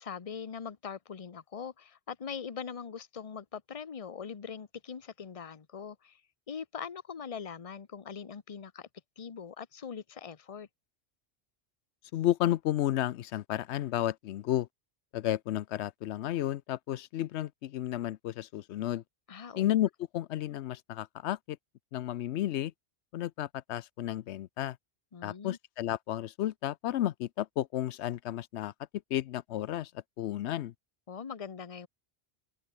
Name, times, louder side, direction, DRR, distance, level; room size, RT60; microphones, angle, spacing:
voice 1, 0.0-6.2 6.5-8.9 9.2-10.7 19.3-19.7 25.1-25.6 31.1-31.9, left 6 dB, 35° left, 0.9 m, -42 dB
voice 2, 12.1-14.7 15.1-19.0 19.6-21.6 21.9-22.7 23.1-24.8 25.2-28.7 29.1-29.9 30.2-30.7, left 13 dB, 85° left, 0.9 m, -32 dB
open air
omnidirectional pair, 1.1 m